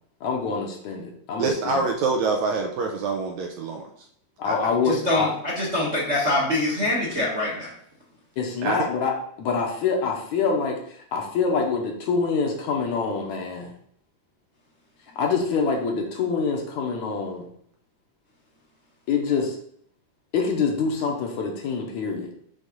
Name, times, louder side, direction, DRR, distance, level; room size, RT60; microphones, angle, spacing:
voice 1, 0.2-1.9 4.4-5.3 8.4-13.7 15.2-17.5 19.1-19.6 20.3-22.3, left 5 dB, 70° left, 1 dB, 2.1 m, -25 dB
voice 2, 1.4-3.9 4.4-4.6 8.6-8.8, right 4 dB, 80° right, 3 dB, 1.7 m, -25 dB
voice 3, 4.8-7.7, left 1 dB, 40° right, -5 dB, 0.9 m, -24 dB
6.4 x 3.6 x 5.2 m, 0.65 s
omnidirectional pair, 3.7 m